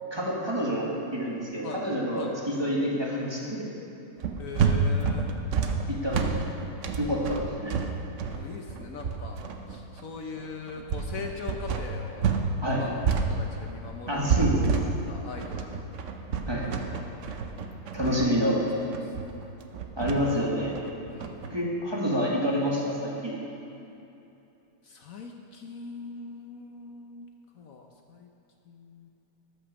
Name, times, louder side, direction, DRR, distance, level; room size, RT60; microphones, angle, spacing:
voice 1, 0.1-3.7 5.9-6.3 7.0-7.8 12.6-12.8 14.1-14.7 16.5-16.6 17.9-18.7 20.0-20.8 21.5-23.4, equal, 15° right, -4 dB, 1.4 m, -28 dB
sound 1, 4.2-12.5 12.7-21.5, right 6 dB, 70° right, 0.7 m, -29 dB
voice 2, 4.4-5.3 8.3-9.4 9.7-12.3 12.8-16.0 16.6-17.2 18.0-18.4 21.1-21.5 24.8-27.3 27.6-28.3 28.6-29.1, left 4 dB, 65° left, 3 dB, 0.8 m, -41 dB
13.5 x 6.3 x 6.3 m, 2.9 s
omnidirectional pair, 2.2 m